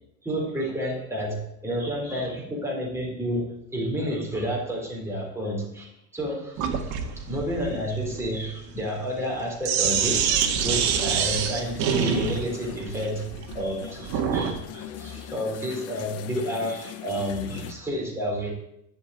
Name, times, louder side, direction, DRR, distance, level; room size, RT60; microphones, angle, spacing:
voice 1, 0.2-10.3 10.6-13.3 13.5-18.5, equal, 5° right, -2 dB, 4.0 m, -30 dB
Sink (filling or washing), 6.6-14.6, right 7 dB, 50° right, 1.8 m, -27 dB
sound 1, 9.8-17.7, left 11 dB, 40° left, 1.0 m, -41 dB
12.5 x 6.2 x 9.3 m, 0.81 s
cardioid pair, 155°, 37 cm